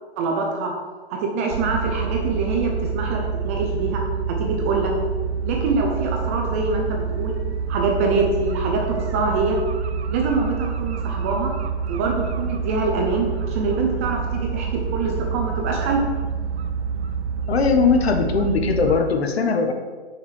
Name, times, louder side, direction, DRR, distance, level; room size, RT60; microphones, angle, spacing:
voice 1, 0.2-0.7 1.1-4.9 5.4-7.4 7.7-9.6 10.1-11.5 11.9-16.0, right 3 dB, 15° right, 1 dB, 0.4 m, -24 dB
sound 1, 1.5-19.0, right 6 dB, 85° right, 0.8 m, -27 dB
voice 2, 17.5-19.7, left 5 dB, 75° left, 4 dB, 1.4 m, -20 dB
6.6 x 5.8 x 6.3 m, 1.5 s
hypercardioid pair, 150°, 32 cm